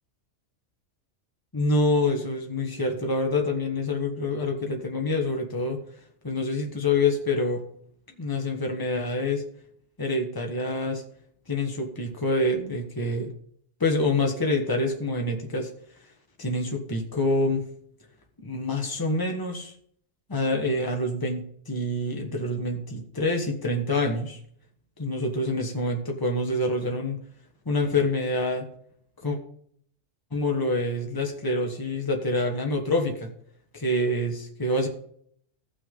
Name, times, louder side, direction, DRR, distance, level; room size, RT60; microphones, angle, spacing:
voice 1, 1.5-5.8 6.2-7.6 8.2-9.4 10.0-11.0 11.5-13.3 13.8-15.7 16.4-17.6 18.4-19.7 20.3-24.4 25.0-27.2 27.6-28.7 29.2-29.4 30.3-33.3 33.7-34.9, left 2 dB, 15° left, 1 dB, 1.5 m, -26 dB
17.0 x 6.1 x 3.9 m, 0.64 s
omnidirectional pair, 1.3 m